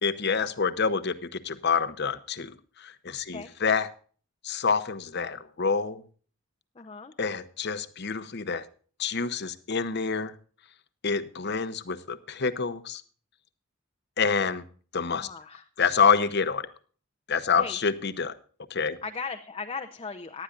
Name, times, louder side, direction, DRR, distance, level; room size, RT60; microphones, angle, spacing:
voice 1, 0.0-3.9 4.4-6.0 7.2-8.6 9.0-10.3 11.0-13.0 14.2-14.6 14.9-15.3 15.8-16.7 17.3-18.3 18.7-19.0, left 5 dB, 55° left, 12 dB, 0.9 m, -27 dB
voice 2, 6.7-7.1 15.1-15.7 17.5-17.8 19.0-20.4, left 4 dB, 25° left, 5 dB, 0.7 m, -37 dB
18.0 x 12.0 x 2.5 m, 0.42 s
head